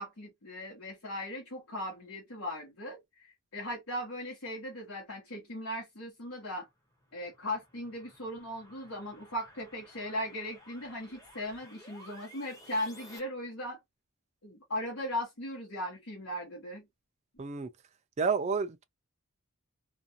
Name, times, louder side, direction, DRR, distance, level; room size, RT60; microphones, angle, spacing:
voice 1, 0.0-6.7 7.1-13.8 14.4-16.9, left 1 dB, 70° left, 1.1 m, -38 dB
sound 1, 6.7-13.2, equal, 15° left, 0.9 m, -55 dB
voice 2, 17.4-17.7 18.2-18.8, right 5 dB, 30° right, 0.3 m, -30 dB
2.5 x 2.2 x 2.7 m
head